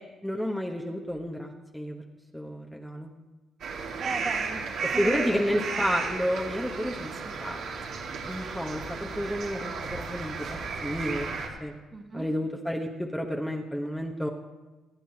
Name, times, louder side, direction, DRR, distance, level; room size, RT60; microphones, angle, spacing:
voice 1, 0.2-2.0 2.3-3.1 5.0-7.6 8.3-11.3 11.6-11.7 12.1-14.3, equal, 5° left, 1 dB, 1.2 m, -31 dB
sound 1, 3.6-11.5, right 4 dB, 75° right, 2.1 m, -34 dB
voice 2, 3.8-5.2 5.5-5.9 7.1-7.4 11.9-12.3, right 3 dB, 35° right, 2 dB, 1.8 m, -38 dB
25.5 x 9.1 x 2.9 m, 1.1 s
cardioid pair, 90°, 0 cm